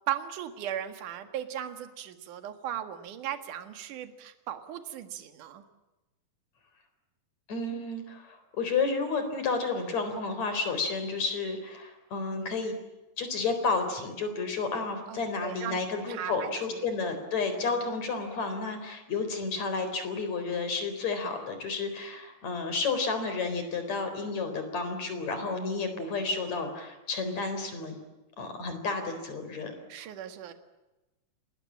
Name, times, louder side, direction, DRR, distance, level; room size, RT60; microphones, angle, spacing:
voice 1, 0.1-5.6 7.7-7.8 15.1-15.8 16.1-16.5 29.9-30.5, right 10 dB, 65° right, 8 dB, 3.1 m, -37 dB
voice 2, 7.5-12.7 13.2-28.0 28.4-29.7 30.0-30.1, left 4 dB, 50° left, 8 dB, 5.2 m, -31 dB
28.0 x 20.0 x 8.7 m, 1.0 s
omnidirectional pair, 4.2 m